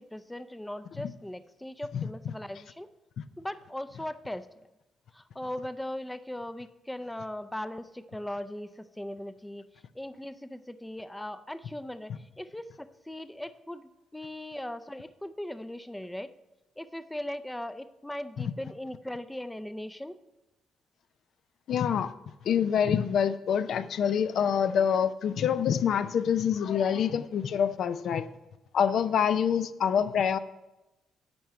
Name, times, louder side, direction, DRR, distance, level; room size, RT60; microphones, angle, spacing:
voice 1, 0.0-2.9 3.4-4.5 5.1-9.7 9.9-16.3 16.8-20.1, left 1 dB, 5° left, 11 dB, 0.5 m, -39 dB
voice 2, 21.7-22.1 22.4-28.3 28.7-30.4, left 8 dB, 65° left, 12 dB, 0.5 m, -26 dB
10.5 x 4.6 x 7.5 m, 1.0 s
cardioid pair, 90°, 0 cm